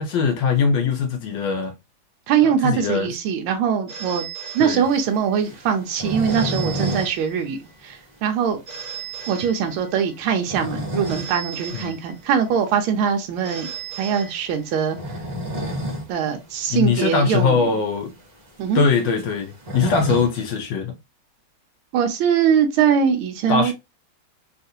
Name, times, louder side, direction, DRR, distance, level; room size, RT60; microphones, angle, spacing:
voice 1, 0.0-1.7 2.4-3.1 4.6-4.8 11.7-11.9 16.7-18.1 18.7-20.9 23.5-23.7, left 5 dB, 75° left, 1.1 m, -21 dB
voice 2, 2.3-4.3 4.5-8.6 9.3-13.7 14.0-15.0 16.1-17.7 18.6-18.8 21.9-23.7, right 7 dB, 80° right, 1.4 m, -22 dB
Telephone, 3.9-5.4 6.3-7.8 8.7-10.2 11.0-12.5 13.4-14.9, right 7 dB, 40° right, 1.7 m, -37 dB
sound 1, 4.8-7.1 7.4-7.5 7.9-8.0 8.5-8.6 10.2-11.3 11.7-11.9 13.4-13.6 14.8-16.1 16.5-16.6 16.8-16.9 17.6-17.7 18.0-20.6, right 1 dB, 65° right, 0.4 m, -30 dB
3.6 x 2.4 x 2.6 m
omnidirectional pair, 2.3 m